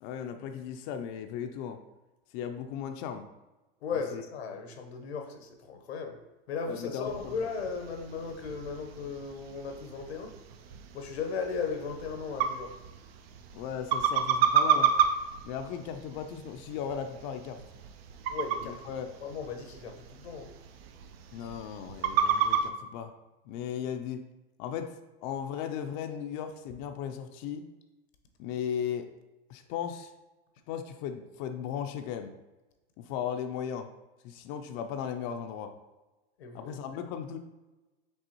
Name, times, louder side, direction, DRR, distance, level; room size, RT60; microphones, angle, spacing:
voice 1, 0.0-1.8 2.3-3.3 4.1-4.2 6.7-7.3 13.5-14.9 15.4-17.6 18.6-19.1 21.3-23.1 23.5-24.2 24.6-24.9 25.2-27.7 28.4-29.1 29.5-30.1 30.7-32.3 33.0-33.9 34.2-35.7 36.5-37.4, left 8 dB, 50° left, 6 dB, 0.4 m, -36 dB
voice 2, 3.8-6.2 6.5-10.3 10.9-12.7 18.3-18.8 19.2-20.5 36.4-37.0, left 5 dB, 90° left, 5 dB, 0.9 m, -36 dB
sound 1, 7.0-22.7, right 7 dB, 70° right, 0.6 m, -32 dB
5.4 x 3.5 x 2.9 m, 1.1 s
hypercardioid pair, 120°, 31 cm